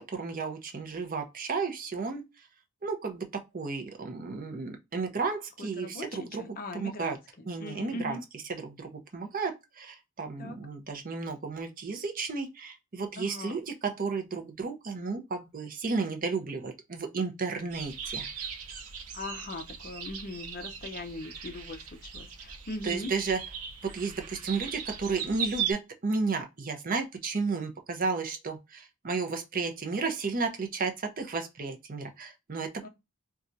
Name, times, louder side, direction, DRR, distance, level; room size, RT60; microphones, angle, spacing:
voice 1, 0.1-2.2 2.8-3.3 3.5-6.5 6.7-7.2 7.4-8.2 8.5-18.3 22.8-23.4 23.8-32.9, right 4 dB, 40° right, 0.5 m, -33 dB
voice 2, 5.6-8.2 10.4-10.6 13.2-13.6 19.1-23.1 32.8-32.9, left 2 dB, 40° left, 0.5 m, -40 dB
sound 1, 17.7-25.7, right 7 dB, 80° right, 0.6 m, -38 dB
4.2 x 2.3 x 2.5 m
head